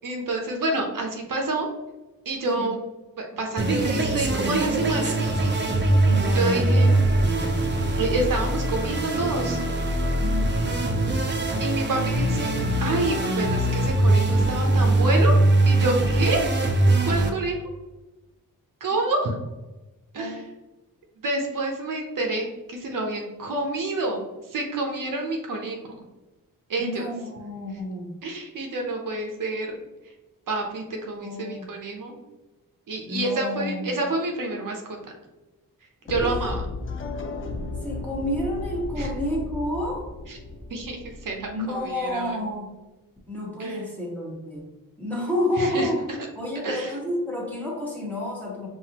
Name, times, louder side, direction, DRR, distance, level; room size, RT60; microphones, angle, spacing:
voice 1, 0.0-1.7 2.3-2.8 3.2-5.1 6.3-7.0 8.0-9.6 11.6-12.5 12.8-15.3 15.7-16.5 17.0-17.6 18.8-19.3 20.1-20.4 21.2-26.0 26.7-27.1 28.2-29.7 30.5-32.1 32.9-34.8 36.1-36.6 39.0-39.1 40.3-40.4 40.7-42.4 43.6-43.8 45.6-45.9 46.6-46.9, right 2 dB, 70° right, 1 dB, 0.7 m, -28 dB
sound 1, 3.6-17.3, right 2 dB, 30° right, 0.6 m, -22 dB
voice 2, 6.0-6.4 10.2-10.6 19.0-19.1 20.1-20.4 26.8-28.1 31.2-31.7 33.1-34.0 36.1-36.5 37.8-40.1 41.5-42.7 43.3-44.7 45.0-46.0 46.4-48.7, left 1 dB, 5° left, -5 dB, 1.2 m, -30 dB
sound 2, 36.1-42.1, left 3 dB, 35° left, 0.4 m, -34 dB
5.8 x 2.5 x 2.9 m, 1.1 s
wide cardioid pair, 140°, 34 cm